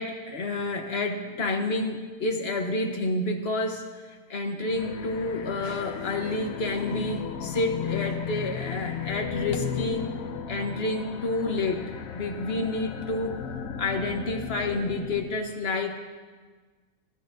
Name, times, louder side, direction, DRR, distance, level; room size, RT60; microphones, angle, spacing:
voice 1, 0.0-10.1 10.5-13.4 13.8-16.1, left 2 dB, 50° left, 4 dB, 1.3 m, -29 dB
sound 1, 4.6-15.4, left 7 dB, 85° left, 1.1 m, -35 dB
19.0 x 10.5 x 2.6 m, 1.4 s
omnidirectional pair, 1.4 m